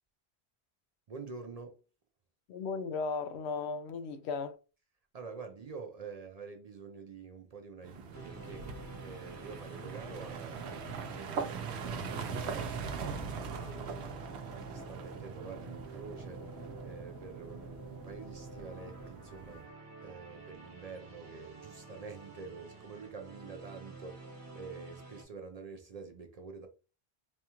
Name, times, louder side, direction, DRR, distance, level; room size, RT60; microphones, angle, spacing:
voice 1, 1.1-1.7 5.1-13.1 13.5-16.4 16.8-19.6 20.0-26.7, right 4 dB, 50° right, 0.5 m, -47 dB
voice 2, 2.5-4.6, left 4 dB, 85° left, 0.8 m, -36 dB
sound 1, 7.8-19.7, right 5 dB, 85° right, 0.9 m, -41 dB
sound 2, 8.1-25.2, right 3 dB, 30° right, 1.1 m, -49 dB
4.2 x 2.3 x 2.9 m
omnidirectional pair, 1.1 m